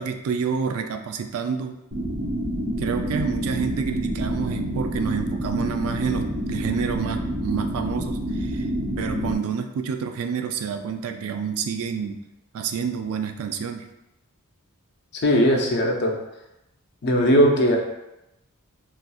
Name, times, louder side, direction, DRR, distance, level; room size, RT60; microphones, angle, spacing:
voice 1, 0.0-1.8 2.8-8.7 9.0-12.2 12.5-13.9, right 6 dB, 65° right, 6 dB, 0.3 m, -28 dB
sound 1, 1.9-9.3, equal, 45° right, 1.1 m, -28 dB
voice 2, 15.1-16.1 17.0-17.8, equal, 50° left, 0 dB, 0.5 m, -19 dB
4.0 x 2.5 x 2.3 m, 0.92 s
head